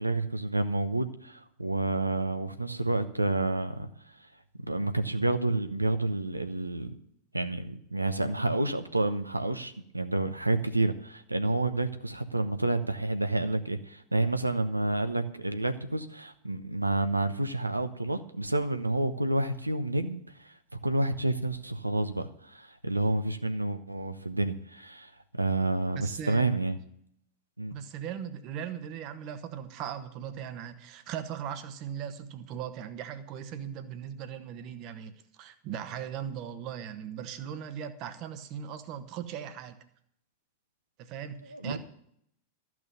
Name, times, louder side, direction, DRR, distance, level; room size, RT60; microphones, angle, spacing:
voice 1, 0.0-3.9 4.7-7.0 7.3-20.5 20.8-25.1 25.4-26.8 27.6-27.8 41.5-41.8, right 2 dB, 85° right, 9 dB, 1.0 m, -29 dB
voice 2, 25.9-26.5 27.7-39.8 41.0-41.8, right 9 dB, 40° right, 11 dB, 1.2 m, -38 dB
13.5 x 6.2 x 9.1 m, 0.69 s
figure-of-eight pair, 90°, 0 cm